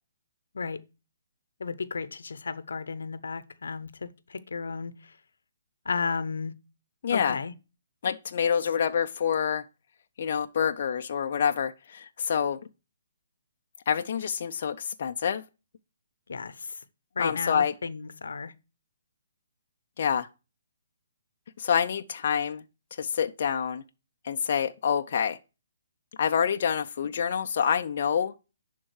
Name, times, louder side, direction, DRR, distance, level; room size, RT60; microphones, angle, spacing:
voice 1, 1.6-5.1 5.8-6.5 7.1-7.5 16.3-16.8 17.2-18.5, left 5 dB, 85° left, 0.8 m, -33 dB
voice 2, 7.0-7.4 8.0-9.6 10.2-12.6 13.9-15.4 17.2-17.7 20.0-20.3 21.6-22.6 23.0-23.8 24.2-25.4 26.2-28.3, left 7 dB, 45° left, 0.5 m, -27 dB
11.0 x 3.7 x 4.7 m
hypercardioid pair, 165°, 0 cm